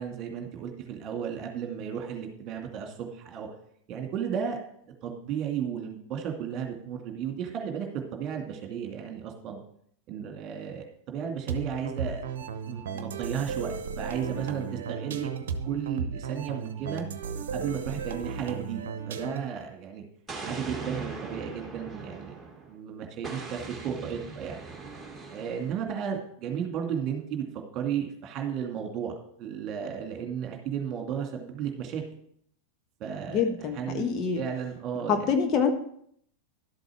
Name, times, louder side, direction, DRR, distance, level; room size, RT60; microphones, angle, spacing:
voice 1, 0.0-3.5 3.9-4.6 5.0-9.6 10.1-12.2 12.7-15.3 15.6-17.0 17.5-20.0 20.4-22.4 22.7-24.6 25.3-27.5 27.7-32.0 33.0-33.4 33.7-34.1 34.3-35.4, right 8 dB, 35° right, 3 dB, 2.4 m, -34 dB
sound 1, 11.5-19.6, right 6 dB, 60° right, 0.9 m, -35 dB
Explosion, 20.3-22.7 23.2-25.8, right 3 dB, 10° right, 2.5 m, -40 dB
voice 2, 33.3-34.4 35.1-35.7, left 6 dB, 30° left, 5 dB, 1.3 m, -26 dB
12.0 x 8.0 x 4.7 m, 0.66 s
figure-of-eight pair, 90°, 0 cm